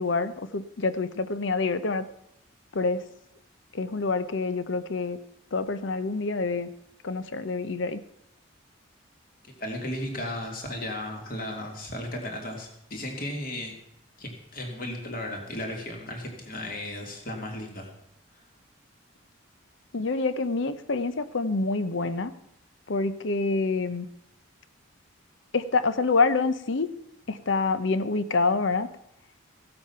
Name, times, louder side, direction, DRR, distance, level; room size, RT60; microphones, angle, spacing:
voice 1, 0.0-2.1 2.7-3.0 3.7-5.2 5.5-6.7 7.0-8.0 19.9-22.3 22.9-24.1 25.5-26.9 27.3-28.9, left 3 dB, 65° left, 13 dB, 0.7 m, -27 dB
voice 2, 9.4-13.7 14.2-17.9 18.3-18.5, left 1 dB, 45° left, 1 dB, 2.6 m, -35 dB
15.0 x 7.8 x 5.7 m, 0.78 s
head